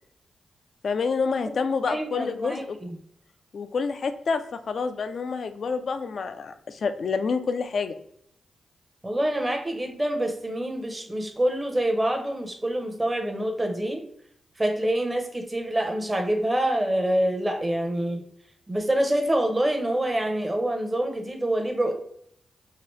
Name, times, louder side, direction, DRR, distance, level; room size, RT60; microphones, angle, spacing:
voice 1, 0.8-2.8 3.5-7.9, left 5 dB, 65° left, 9 dB, 0.3 m, -28 dB
voice 2, 1.9-2.9 9.0-14.0 14.6-18.2 18.7-21.9, right 1 dB, 20° right, 3 dB, 0.7 m, -26 dB
2.9 x 2.8 x 3.1 m, 0.69 s
supercardioid pair, 45°, 0 cm